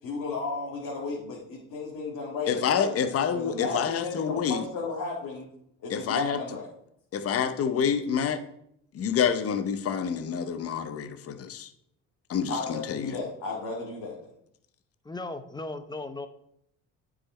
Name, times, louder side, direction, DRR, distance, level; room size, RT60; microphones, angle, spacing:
voice 1, 0.0-3.0 3.3-5.5 5.8-6.7 12.5-14.2, left 3 dB, 70° left, -4 dB, 2.0 m, -34 dB
voice 2, 2.5-4.6 5.9-6.4 7.1-8.4 8.9-11.7 12.3-13.2, left 7 dB, 45° left, 9 dB, 0.8 m, -27 dB
voice 3, 15.0-16.3, left 2 dB, 15° left, 10 dB, 0.8 m, -36 dB
8.6 x 4.9 x 4.3 m, 0.74 s
supercardioid pair, 80°, 32 cm